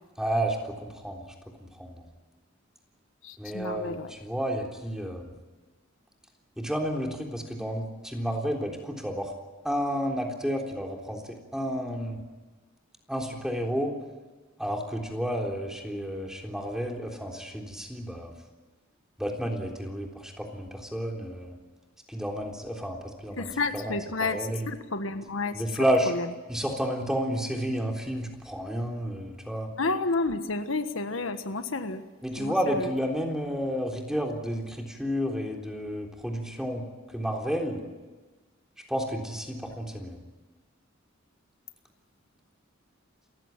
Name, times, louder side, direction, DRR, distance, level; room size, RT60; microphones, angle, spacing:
voice 1, 0.2-1.3 1.8-2.0 3.4-5.3 6.6-9.3 9.6-12.2 13.1-13.9 14.6-18.3 19.2-21.5 22.1-24.7 25.5-26.1 26.5-29.7 32.2-36.8 37.1-37.8 38.9-40.2, equal, 5° right, 1 dB, 3.6 m, -31 dB
voice 2, 3.2-4.1 23.4-24.4 24.7-25.5 29.8-32.0 32.4-32.5 32.8-32.9, left 3 dB, 75° left, 8 dB, 1.4 m, -30 dB
28.0 x 15.5 x 9.1 m, 1.3 s
head